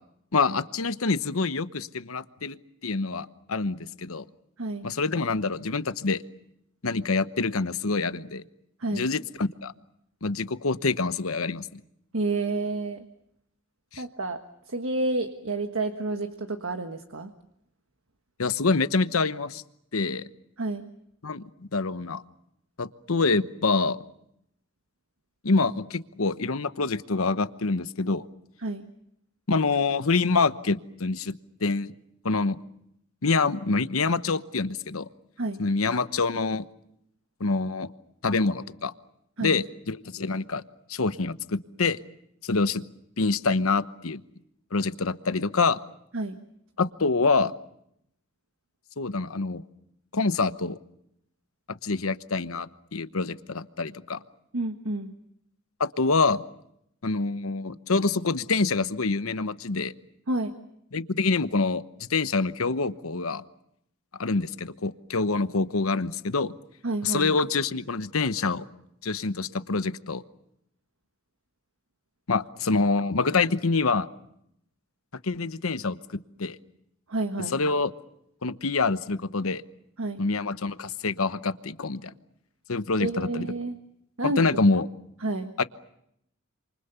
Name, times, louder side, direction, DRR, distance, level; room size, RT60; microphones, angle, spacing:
voice 1, 0.3-2.6 2.8-4.2 4.8-6.2 6.8-8.4 8.9-9.7 10.2-11.8 13.9-14.0 18.4-19.6 19.9-20.2 21.2-21.4 21.7-22.2 22.8-24.0 25.4-28.3 29.5-31.3 31.6-31.9 32.2-32.6 33.2-35.1 35.6-36.7 37.4-37.9 38.2-38.9 39.4-40.6 40.9-42.0 42.4-42.8 43.2-44.2 44.7-45.8 46.8-47.5 49.0-49.6 50.1-50.8 51.7-54.2 55.8-56.4 57.0-59.9 60.9-63.4 64.2-66.5 67.0-68.7 69.0-70.2 72.3-74.1 75.2-76.0 76.4-76.6 77.5-77.9 78.4-79.6 80.2-82.1 82.7-83.5 84.2-84.9 85.6-85.7, left 3 dB, 90° left, 13 dB, 1.0 m, -26 dB
voice 2, 12.1-13.1 14.0-14.4 14.7-17.3 20.6-20.8 28.6-28.8 35.4-35.6 39.4-39.6 46.1-46.4 54.5-55.1 60.3-60.5 66.8-67.3 77.1-77.5 80.0-80.2 83.0-83.8 84.2-84.4 85.2-85.5, right 2 dB, 75° right, 6 dB, 1.5 m, -29 dB
28.5 x 26.5 x 6.9 m, 0.77 s
head